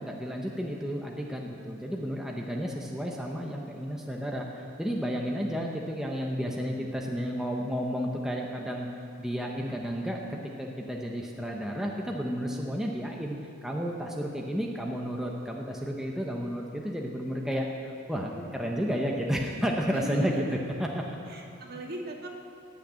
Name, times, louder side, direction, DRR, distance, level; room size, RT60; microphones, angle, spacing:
voice 1, 0.0-8.9 9.2-21.0, equal, ahead, -1 dB, 0.9 m, -32 dB
voice 2, 19.9-20.6 21.3-22.3, right 1 dB, 45° right, 0 dB, 1.8 m, -37 dB
18.0 x 6.6 x 8.7 m, 2.7 s
head